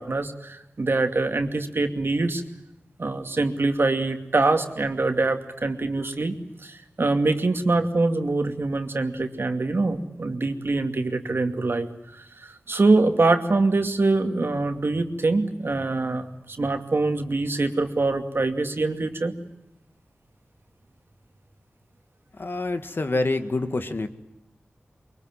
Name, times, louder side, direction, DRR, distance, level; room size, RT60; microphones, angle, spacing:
voice 1, 0.0-2.4 3.0-6.3 6.6-19.3, right 3 dB, 60° right, 5 dB, 2.5 m, -24 dB
voice 2, 22.3-24.1, left 2 dB, 55° left, 8 dB, 2.0 m, -26 dB
23.5 x 22.5 x 9.1 m, 0.92 s
wide cardioid pair, 50°, 4 cm